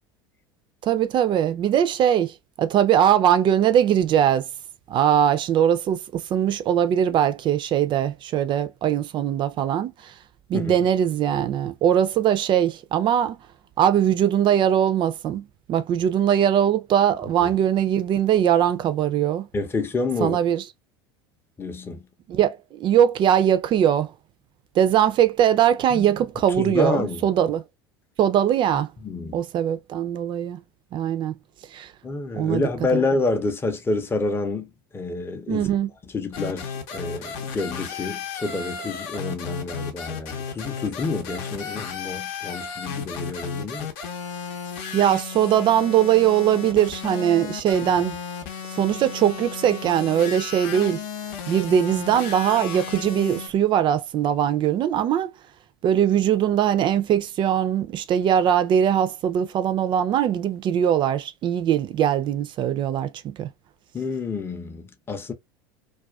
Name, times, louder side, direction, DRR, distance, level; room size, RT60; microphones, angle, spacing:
voice 1, 0.8-4.5 4.9-10.1 10.5-13.4 13.8-19.5 20.2-20.6 22.3-24.1 24.8-27.6 28.2-28.9 29.3-30.6 30.9-31.3 31.7-31.9 32.3-33.0 35.5-35.9 44.9-48.1 48.7-51.0 51.5-55.3 55.8-63.5, right 10 dB, 40° right, 0.4 m, -21 dB
voice 2, 19.5-20.4 21.6-22.1 25.9-26.0 26.6-27.3 29.0-29.4 32.0-35.7 36.1-43.9 63.9-65.3, left 3 dB, 20° left, 0.6 m, -28 dB
sound 1, 36.3-53.5, left 6 dB, 60° left, 0.7 m, -34 dB
2.3 x 2.3 x 2.3 m
hypercardioid pair, 85°, 13 cm